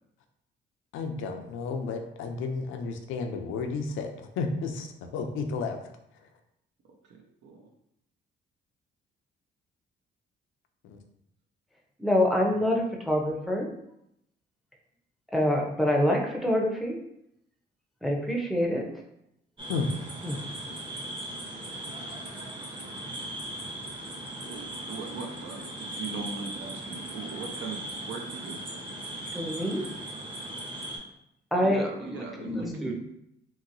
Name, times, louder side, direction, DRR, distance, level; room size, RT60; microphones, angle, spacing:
voice 1, 0.9-4.9 5.1-5.8 19.7-19.9, left 4 dB, 85° left, 5 dB, 0.5 m, -32 dB
voice 2, 7.0-7.7 24.4-28.6 32.0-32.9, right 4 dB, 65° right, 1 dB, 0.5 m, -40 dB
voice 3, 12.0-13.7 15.3-17.0 18.0-18.8 20.2-20.4 29.3-29.8 31.5-32.9, left 1 dB, ahead, 0 dB, 0.6 m, -26 dB
sound 1, 19.6-31.0, right 1 dB, 25° right, 0.9 m, -38 dB
2.9 x 2.8 x 2.6 m, 0.78 s
cardioid pair, 90°, 20 cm